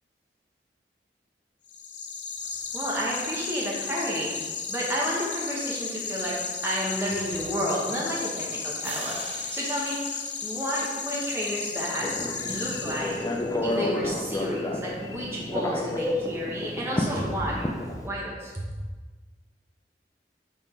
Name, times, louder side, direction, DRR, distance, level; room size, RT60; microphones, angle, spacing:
sound 1, 1.7-13.5, left 5 dB, 85° left, 0.7 m, -34 dB
voice 1, 2.7-13.2 13.6-17.7 18.0-18.6, equal, 15° right, -5 dB, 1.2 m, -31 dB
sound 2, 8.8-11.7, right 5 dB, 35° right, 0.5 m, -44 dB
Telephone, 12.0-18.1, left 1 dB, 20° left, 0.4 m, -31 dB
5.6 x 3.9 x 4.4 m, 1.3 s
head